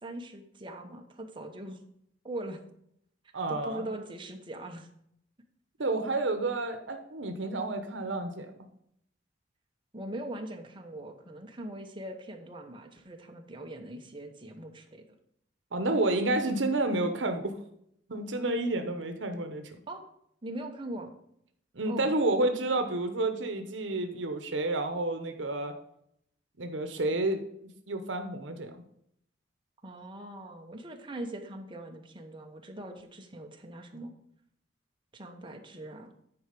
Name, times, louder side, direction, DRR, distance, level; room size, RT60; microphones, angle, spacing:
voice 1, 0.0-1.8 2.2-2.6 3.5-4.9 9.9-15.0 19.9-20.0 20.4-21.1 21.9-22.1 29.8-34.1 35.1-36.1, right 1 dB, 25° right, 3 dB, 1.1 m, -41 dB
voice 2, 3.3-3.9 5.8-8.5 15.7-17.5 18.1-19.8 21.7-25.7 26.6-28.8, right 2 dB, 80° right, 7 dB, 0.9 m, -30 dB
9.7 x 4.7 x 5.3 m, 0.72 s
head